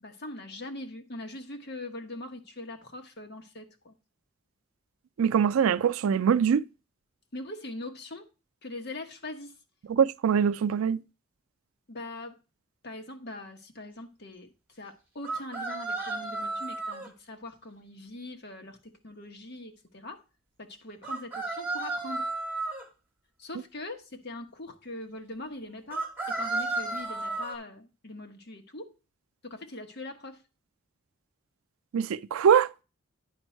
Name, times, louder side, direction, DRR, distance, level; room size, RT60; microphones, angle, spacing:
voice 1, 0.0-4.0 7.3-8.3 8.6-9.5 11.9-12.4 12.8-20.2 20.6-22.3 23.4-28.9 29.4-30.4, left 2 dB, 50° left, 1.3 m, -42 dB
voice 2, 5.2-6.6 9.9-11.0 31.9-32.7, right 7 dB, 80° right, 0.4 m, -23 dB
sound 1, 15.2-17.1 21.0-22.8 25.9-27.6, right 2 dB, 10° right, 2.1 m, -33 dB
9.9 x 5.3 x 4.5 m
head